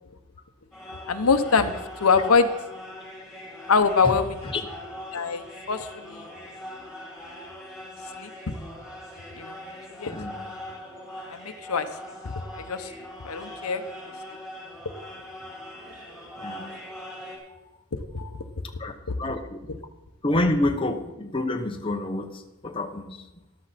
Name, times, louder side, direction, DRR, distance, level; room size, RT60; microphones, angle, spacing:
sound 1, 0.7-17.4, left 1 dB, 5° right, 3.7 m, -41 dB
voice 1, 1.1-2.5 3.7-4.4 5.1-6.3 8.2-8.6 9.4-9.6 10.0-10.2 11.3-11.9 12.2-12.9 13.2-13.8 17.9-18.3 19.1-19.2, left 5 dB, 85° left, 9 dB, 0.9 m, -24 dB
voice 2, 10.1-10.5 16.4-16.7 17.5-17.6 18.8-18.9 19.2-19.7 20.2-23.2, left 1 dB, 25° left, 5 dB, 0.8 m, -28 dB
13.0 x 11.5 x 4.2 m, 1.0 s
head